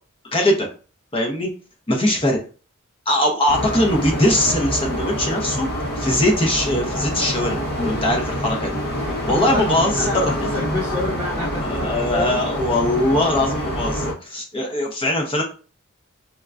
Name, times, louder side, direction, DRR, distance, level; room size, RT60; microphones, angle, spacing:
voice 1, 0.3-0.7 1.1-1.5 1.9-2.4 3.1-5.7 6.0-8.8 9.3-10.3 11.4-15.4, left 1 dB, 25° left, 1 dB, 0.7 m, -21 dB
sound 1, 3.5-14.1, equal, 45° left, 1.0 m, -26 dB
voice 2, 9.3-9.7 10.0-12.4, left 2 dB, 10° right, -8 dB, 1.0 m, -28 dB
4.4 x 2.2 x 2.5 m, 0.36 s
head